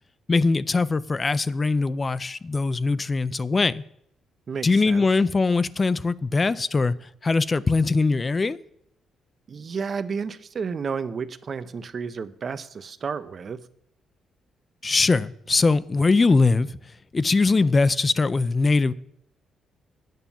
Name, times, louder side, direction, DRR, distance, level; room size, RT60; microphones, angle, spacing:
voice 1, 0.3-3.8 4.6-8.6 14.8-18.9, left 3 dB, 30° left, 0.3 m, -22 dB
voice 2, 4.5-5.1 9.5-13.6, right 5 dB, 45° right, 0.5 m, -31 dB
9.2 x 5.8 x 7.0 m
cardioid pair, 90°, 0 cm